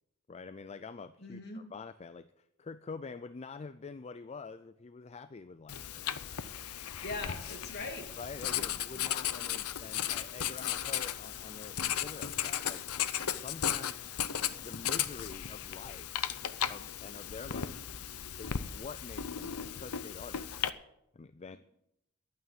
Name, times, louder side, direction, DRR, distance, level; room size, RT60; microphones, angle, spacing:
voice 1, 0.3-6.0 8.2-12.8 13.4-14.0 14.5-16.1 16.7-17.8 18.4-20.4 21.1-21.6, left 4 dB, 30° left, 13 dB, 0.4 m, -46 dB
voice 2, 1.2-1.6 7.0-8.1 8.4-8.7 8.9-9.0 21.5-21.6, left 2 dB, 50° left, 2 dB, 2.8 m, -41 dB
Writing, 5.7-20.7, left 10 dB, 90° left, 0.7 m, -36 dB
11.5 x 9.3 x 9.1 m, 0.82 s
head